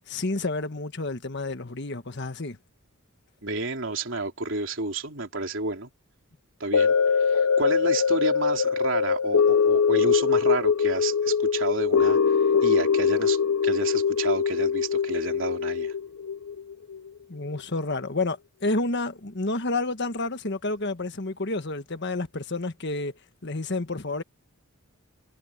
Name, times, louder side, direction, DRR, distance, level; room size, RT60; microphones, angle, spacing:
voice 1, 0.1-2.6 17.3-23.1 23.4-24.2, left 2 dB, 55° left, 1.4 m, -30 dB
voice 2, 3.4-5.9 6.6-15.9, right 3 dB, 60° right, 3.6 m, -31 dB
sound 1, 6.7-17.1 17.5-17.6, left 6 dB, 80° left, 0.8 m, -23 dB
head